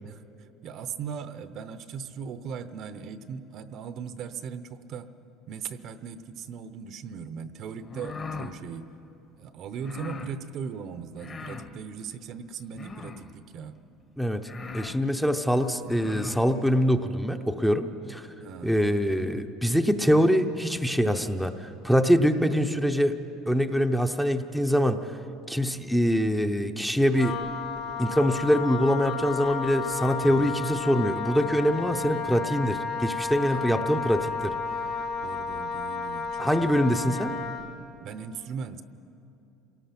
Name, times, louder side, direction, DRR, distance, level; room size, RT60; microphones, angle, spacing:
voice 1, 0.0-5.1 5.5-8.9 9.4-13.7 18.4-18.8 30.2-30.5 33.5-33.9 35.2-36.8 38.0-38.8, right 6 dB, 50° right, 12 dB, 0.8 m, -39 dB
sound 1, 7.8-8.6 9.8-10.3 11.2-11.7 12.7-13.3 14.0-14.1 14.4-15.0 15.8-16.4, left 4 dB, 30° left, 1.2 m, -39 dB
voice 2, 14.2-18.3 18.6-23.2 23.5-25.1 25.5-27.4 28.0-34.6 36.4-37.3, equal, ahead, 6 dB, 0.7 m, -24 dB
Wind instrument woodwind instrument, 27.1-37.7, left 5 dB, 45° left, 2.1 m, -32 dB
27.5 x 18.0 x 6.0 m, 2.9 s
cardioid pair, 135°, 0 cm